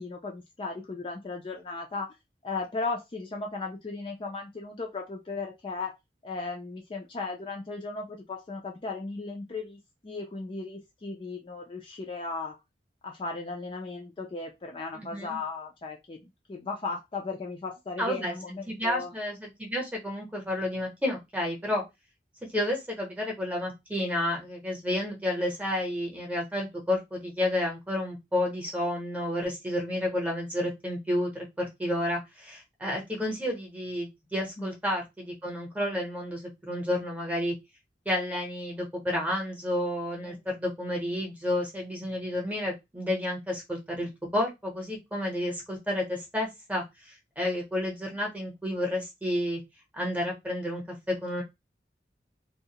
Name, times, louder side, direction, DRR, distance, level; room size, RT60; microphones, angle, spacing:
voice 1, 0.0-2.1 2.4-5.9 6.2-12.6 13.0-19.1 34.6-34.7 40.3-40.4, left 3 dB, 30° left, 1 dB, 0.4 m, -36 dB
voice 2, 14.9-15.4 18.0-18.3 18.7-21.8 22.5-37.5 38.1-46.8 47.4-49.6 49.9-51.4, left 1 dB, 10° right, 0 dB, 0.8 m, -31 dB
2.3 x 2.0 x 2.8 m, 0.21 s
head